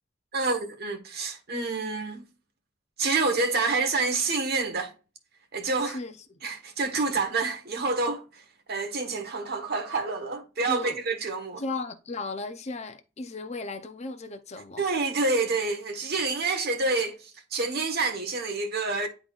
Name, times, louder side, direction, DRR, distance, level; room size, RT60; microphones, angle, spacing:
voice 1, 0.3-2.2 3.0-4.9 5.5-6.0 6.4-8.2 8.7-11.6 14.8-19.1, right 3 dB, 55° right, 1.3 m, -28 dB
voice 2, 5.8-6.2 10.7-11.0 11.6-14.9, left 3 dB, 35° left, 0.6 m, -35 dB
10.0 x 3.9 x 2.4 m
head